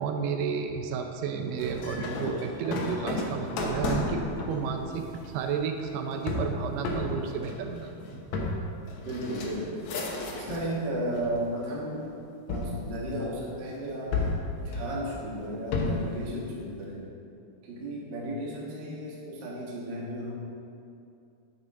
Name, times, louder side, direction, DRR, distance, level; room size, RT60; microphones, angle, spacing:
voice 1, 0.0-5.1 5.3-8.2, right 6 dB, 85° right, 5 dB, 2.6 m, -32 dB
sound 1, 1.6-10.7 11.1-11.8 12.5-13.6 14.1-16.2, left 2 dB, 85° left, 1.6 m, -33 dB
voice 2, 9.0-9.8 10.3-12.0 12.5-14.2 14.6-17.0 17.6-20.3, right 1 dB, 55° right, -5 dB, 1.2 m, -34 dB
9.3 x 7.1 x 3.7 m, 2.6 s
omnidirectional pair, 4.6 m